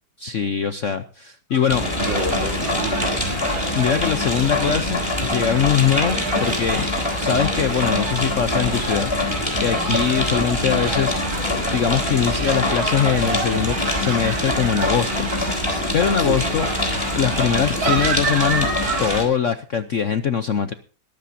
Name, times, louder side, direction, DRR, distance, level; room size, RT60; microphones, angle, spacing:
voice 1, 0.2-1.8 3.7-6.9 7.2-9.1 9.6-11.4 11.7-15.3 15.9-16.7 17.1-18.7 19.0-20.7, left 7 dB, 60° left, 10 dB, 0.8 m, -22 dB
sound 1, 1.5-13.1, left 6 dB, 80° left, 2.8 m, -37 dB
sound 2, 1.7-19.2, left 1 dB, 15° left, 3.7 m, -24 dB
voice 2, 1.8-3.3 9.9-10.3 16.2-16.4, right 2 dB, 70° right, 2 dB, 4.3 m, -29 dB
sound 3, 2.0-19.2, right 4 dB, 85° right, 3.1 m, -31 dB
21.5 x 12.0 x 2.7 m, 0.39 s
omnidirectional pair, 2.1 m